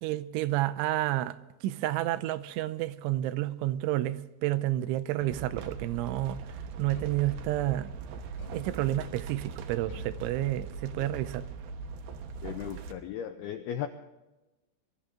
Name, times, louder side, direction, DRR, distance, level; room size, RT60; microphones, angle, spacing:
voice 1, 0.0-1.4 1.6-8.0 8.5-11.5, right 15 dB, 85° right, 3.1 m, -30 dB
sound 1, 5.2-5.9 6.9-7.8 8.4-9.2 9.9-10.9, left 3 dB, 70° left, 6.1 m, -50 dB
sound 2, 5.3-12.9, right 5 dB, 70° right, 2.6 m, -41 dB
voice 2, 12.4-13.9, left 10 dB, 90° left, 2.2 m, -36 dB
23.0 x 13.0 x 3.7 m
omnidirectional pair, 5.5 m